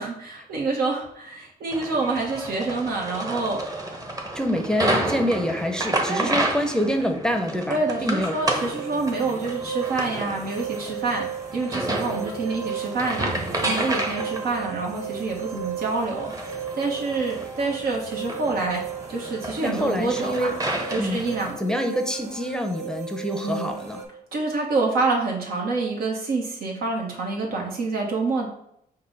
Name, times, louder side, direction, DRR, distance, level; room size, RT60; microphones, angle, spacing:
voice 1, 0.0-3.6 6.1-6.4 7.7-11.3 11.5-18.8 19.1-20.5 20.9-21.5 23.4-23.7 24.3-28.5, right 3 dB, 80° right, -1 dB, 1.2 m, -27 dB
sound 1, 1.7-21.5, right 1 dB, 25° right, 0.9 m, -31 dB
voice 2, 4.3-8.4 19.6-20.6 21.0-21.2 21.6-24.0, equal, 5° left, 4 dB, 0.6 m, -26 dB
sound 2, 8.4-24.0, right 7 dB, 50° right, 0.9 m, -35 dB
5.4 x 2.2 x 4.0 m, 0.73 s
cardioid pair, 65°, 16 cm